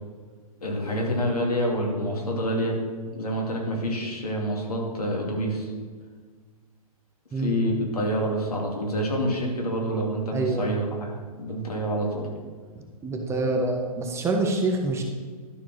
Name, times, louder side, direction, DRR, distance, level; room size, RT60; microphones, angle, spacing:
voice 1, 0.6-2.8 3.1-5.7 7.4-11.1 11.4-12.3, equal, 85° left, -1 dB, 2.6 m, -27 dB
voice 2, 10.3-10.7 13.0-15.0, right 2 dB, 15° right, 2 dB, 1.2 m, -26 dB
12.0 x 4.5 x 6.1 m, 1.5 s
hypercardioid pair, 120°, 19 cm